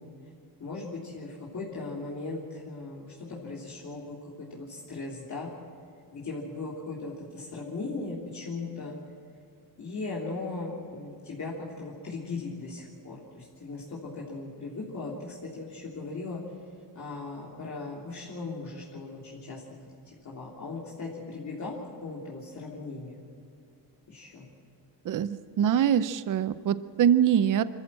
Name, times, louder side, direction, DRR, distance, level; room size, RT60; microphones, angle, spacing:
voice 1, 0.6-5.5 6.1-8.9 9.8-16.4 16.9-19.6 20.2-21.7 22.0-23.2 24.1-24.4, left 3 dB, 45° left, -5 dB, 3.3 m, -38 dB
voice 2, 25.1-27.6, right 9 dB, 50° right, 14 dB, 0.7 m, -24 dB
25.5 x 14.0 x 7.6 m, 2.4 s
cardioid pair, 125°, 39 cm